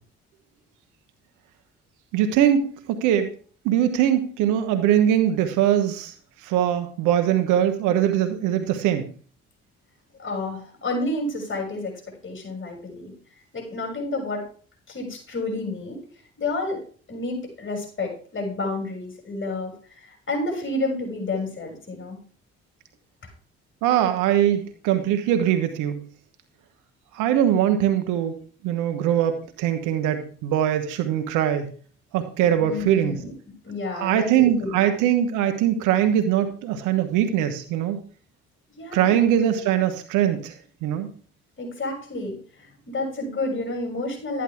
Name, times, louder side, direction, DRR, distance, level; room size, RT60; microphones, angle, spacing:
voice 1, 2.1-3.3 3.6-6.1 6.4-9.1 23.8-26.0 27.1-28.4 28.6-31.7 32.1-33.2 33.9-38.0 38.9-40.5 40.8-41.1, right 10 dB, 80° right, 8 dB, 1.2 m, -22 dB
voice 2, 10.2-13.1 13.5-14.5 14.9-16.0 16.4-16.8 17.1-22.2 32.6-33.3 33.6-34.9 38.8-39.4 41.6-44.4, left 2 dB, 40° left, 0 dB, 6.7 m, -30 dB
13.0 x 10.0 x 3.5 m, 0.43 s
supercardioid pair, 55°, 30 cm